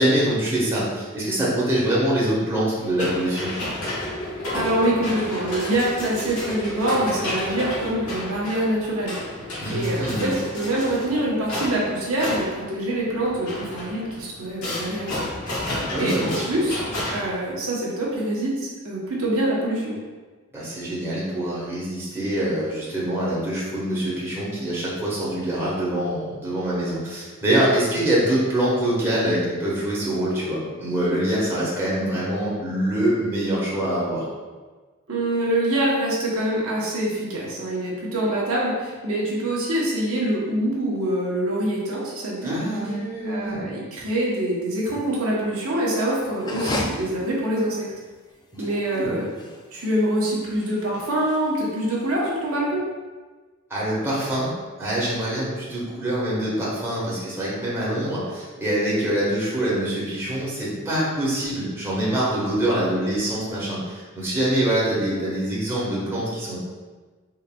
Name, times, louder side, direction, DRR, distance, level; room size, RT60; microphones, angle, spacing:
voice 1, 0.0-3.5 9.6-10.2 15.9-16.4 20.5-34.3 42.4-43.6 48.6-48.7 48.9-49.1 53.7-54.5 54.8-66.6, right 1 dB, 10° right, -8 dB, 1.1 m, -24 dB
sound 1, 2.8-17.3, left 1 dB, 85° left, 1.4 m, -31 dB
voice 2, 4.5-9.2 9.7-15.3 16.0-16.8 17.1-19.9 35.1-42.5 42.8-43.0 43.3-47.9 48.6-49.3 49.7-52.8, right 1 dB, 75° right, -5 dB, 0.9 m, -25 dB
sound 2, 46.3-52.5, left 2 dB, 20° left, 0.3 m, -35 dB
3.9 x 3.8 x 2.2 m, 1.4 s
head